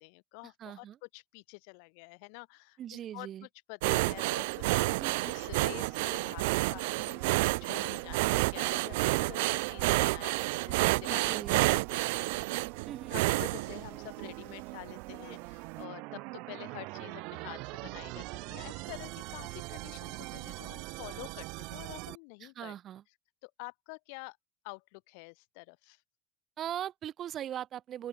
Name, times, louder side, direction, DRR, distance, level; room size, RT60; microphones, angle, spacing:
voice 1, 0.0-3.3 3.7-7.3 7.6-12.2 13.1-22.7 23.4-24.4 24.6-26.0, left 37 dB, 65° left, 1.7 m, -48 dB
voice 2, 0.6-1.0 2.8-3.5 5.0-5.3 11.0-11.6 12.8-13.2 22.4-23.0 26.6-28.1, right 11 dB, 30° right, 0.6 m, -40 dB
sound 1, 3.8-14.4 14.9-15.1 15.5-15.6, right 23 dB, 85° right, 0.3 m, -29 dB
sound 2, 4.0-22.2, right 26 dB, 55° right, 1.9 m, -44 dB
open air
cardioid pair, 170°, 0 cm